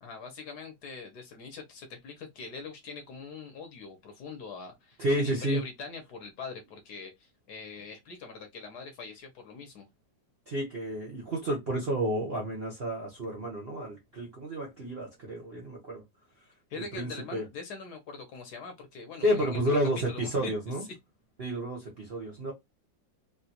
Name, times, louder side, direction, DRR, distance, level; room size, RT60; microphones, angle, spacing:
voice 1, 0.0-9.9 16.7-19.8 20.1-20.8, left 4 dB, 60° left, 1.2 m, -43 dB
voice 2, 5.0-5.6 10.5-16.0 16.8-17.4 19.2-20.8 21.4-22.5, right 1 dB, 50° right, 0.7 m, -31 dB
3.7 x 2.3 x 2.8 m
omnidirectional pair, 2.3 m